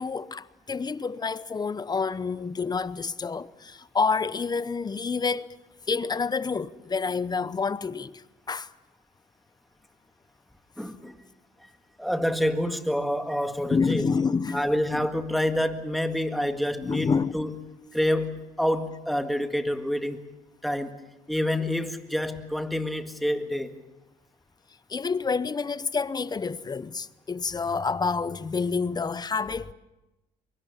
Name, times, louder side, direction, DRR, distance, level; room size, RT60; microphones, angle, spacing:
voice 1, 0.0-5.5 5.9-8.2 8.5-8.7 13.7-14.7 14.9-15.0 16.8-17.3 24.9-29.7, left 5 dB, 25° left, 0.8 m, -28 dB
voice 2, 10.8-11.1 12.0-14.1 14.5-17.5 17.9-20.2 20.6-21.0 21.3-23.7, left 1 dB, ahead, 1.8 m, -27 dB
24.0 x 23.0 x 7.0 m
cardioid pair, 110°, 17 cm